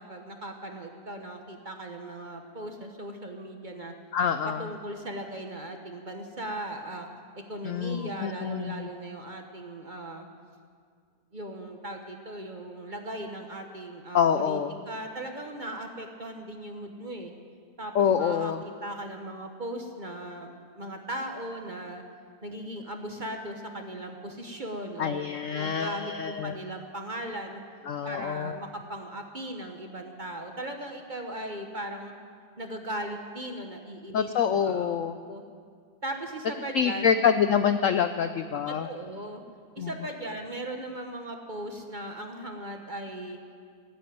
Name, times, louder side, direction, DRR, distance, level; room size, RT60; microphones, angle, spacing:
voice 1, 0.0-3.9 4.4-7.1 7.4-10.3 11.3-14.6 14.9-17.3 17.8-22.0 22.4-25.2 25.5-27.6 28.0-32.1 32.6-35.0 35.3-35.4 36.0-37.2 38.7-39.4 39.7-43.4, right 1 dB, 30° right, 4 dB, 1.1 m, -38 dB
voice 2, 4.1-4.6 7.7-8.9 14.1-14.7 17.9-18.6 25.0-26.5 27.9-28.6 34.1-35.1 36.7-38.9 39.8-39.9, left 7 dB, 70° left, 9 dB, 0.7 m, -26 dB
18.0 x 8.6 x 9.2 m, 2.1 s
omnidirectional pair, 1.9 m